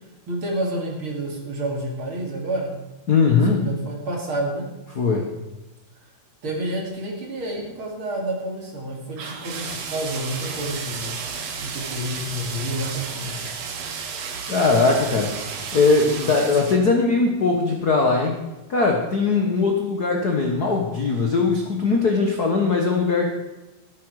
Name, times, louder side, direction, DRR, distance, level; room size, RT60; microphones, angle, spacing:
voice 1, 0.3-2.8 3.5-4.6 6.4-11.2 11.6-13.4, right 1 dB, 40° right, 0 dB, 3.0 m, -29 dB
voice 2, 3.1-3.7 4.9-5.3 14.5-15.3 15.7-18.4 18.7-23.3, left 4 dB, 55° left, 2 dB, 1.0 m, -20 dB
sound 1, 6.9-7.0 7.4-7.7 9.2-16.8, right 5 dB, 60° right, 2.3 m, -33 dB
13.5 x 11.5 x 4.8 m, 1.1 s
omnidirectional pair, 3.8 m